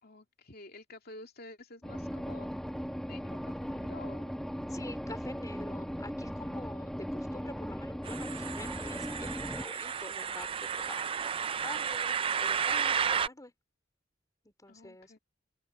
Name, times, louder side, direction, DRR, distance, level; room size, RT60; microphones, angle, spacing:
voice 1, 0.0-2.5 3.0-4.3 14.7-15.2, left 2 dB, 55° left, 2.7 m, -50 dB
sound 1, 1.8-9.7, equal, ahead, 0.9 m, -38 dB
voice 2, 4.7-13.5 14.4-15.2, left 2 dB, 20° left, 3.9 m, -47 dB
sound 2, 8.0-13.3, right 7 dB, 30° right, 0.3 m, -32 dB
open air
head